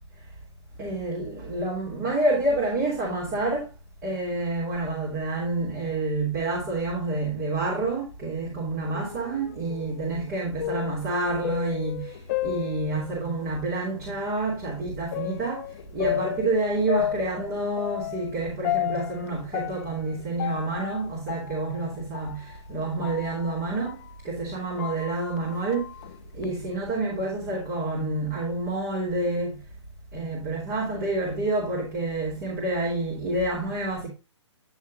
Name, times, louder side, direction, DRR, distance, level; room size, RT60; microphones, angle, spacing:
voice 1, 0.8-3.7 4.0-12.2 12.4-15.7 15.9-24.0 24.2-25.9 26.3-29.6 30.1-34.1, right 2 dB, 35° right, 3.1 m, -28 dB
sound 1, 8.9-13.6 14.0-14.1 15.1-24.2 24.6-26.4, left 13 dB, 35° left, 0.4 m, -33 dB
9.7 x 6.4 x 2.6 m
figure-of-eight pair, 130°, 16 cm